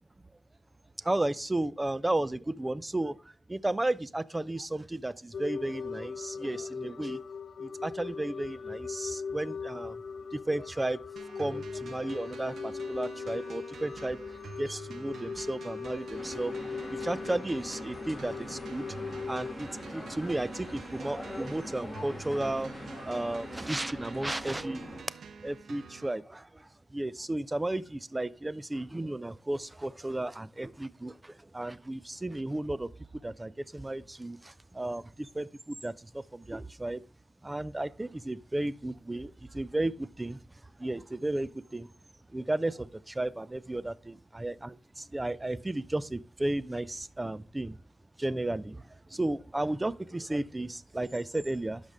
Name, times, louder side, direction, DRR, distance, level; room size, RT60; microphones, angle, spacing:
voice 1, 1.0-3.2 3.5-7.2 7.6-10.0 10.3-11.0 11.4-16.5 16.9-18.8 19.3-24.9 25.4-37.0 37.4-40.4 40.8-41.9 42.3-47.8 48.2-48.8 49.1-51.8, right 1 dB, 20° right, 0.5 m, -34 dB
sound 1, 5.3-19.5, left 5 dB, 65° left, 0.3 m, -39 dB
sound 2, 11.2-26.2, right 5 dB, 70° right, 0.7 m, -48 dB
sound 3, 16.1-25.0, equal, 5° left, 2.3 m, -42 dB
11.5 x 5.2 x 3.6 m
cardioid pair, 65°, 0 cm